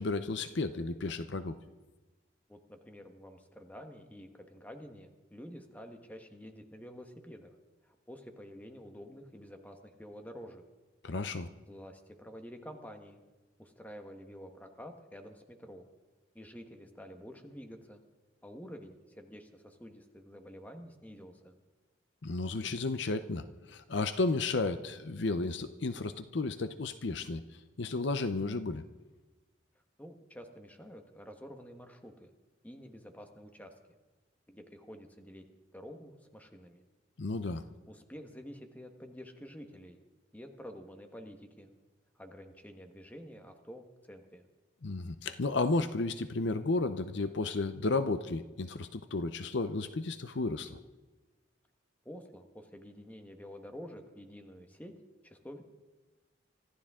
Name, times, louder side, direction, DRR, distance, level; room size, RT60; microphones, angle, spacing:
voice 1, 0.0-1.6 11.0-11.5 22.2-28.8 37.2-37.6 44.8-50.8, left 3 dB, 60° left, 11 dB, 0.7 m, -33 dB
voice 2, 2.5-7.5 7.8-10.6 11.7-13.2 13.6-15.9 16.3-18.0 18.4-21.5 30.0-32.3 32.6-33.7 34.5-35.4 35.7-36.8 37.9-40.0 40.3-41.7 42.1-44.4 52.0-54.9 55.2-55.6, equal, 10° left, 5 dB, 1.4 m, -49 dB
25.0 x 14.5 x 3.7 m, 1.2 s
head